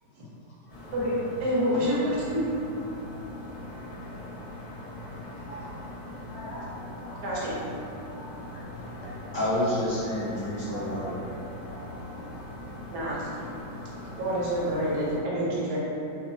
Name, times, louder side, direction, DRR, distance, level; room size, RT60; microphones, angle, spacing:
sound 1, 0.7-15.2, left 1 dB, 65° left, 0.9 m, -41 dB
voice 1, 1.4-2.4 7.2-7.6 12.9-13.3 14.2-15.8, equal, 75° right, -6 dB, 1.1 m, -27 dB
voice 2, 5.4-5.8 6.3-7.2 7.8-9.5 10.3-10.4 10.7-10.9 11.7-11.9 12.3-12.4 12.9-13.1 13.4-13.5 14.0-14.2 14.7-14.8, equal, 85° left, -6 dB, 0.6 m, -44 dB
voice 3, 9.3-11.4, equal, 20° left, -15 dB, 0.7 m, -29 dB
3.0 x 2.1 x 2.5 m, 2.8 s
omnidirectional pair, 1.8 m